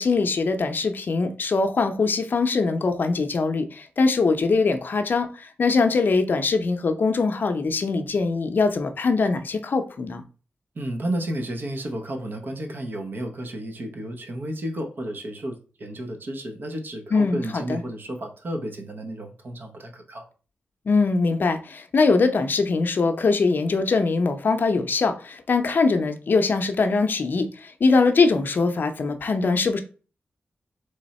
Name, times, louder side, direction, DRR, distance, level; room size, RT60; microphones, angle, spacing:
voice 1, 0.0-5.3 5.6-10.2 17.1-17.8 20.9-27.5 27.8-29.8, left 4 dB, 55° left, 0.6 m, -22 dB
voice 2, 10.8-20.3, right 1 dB, 55° right, 0.9 m, -32 dB
3.5 x 3.2 x 4.2 m
wide cardioid pair, 105°, 4 cm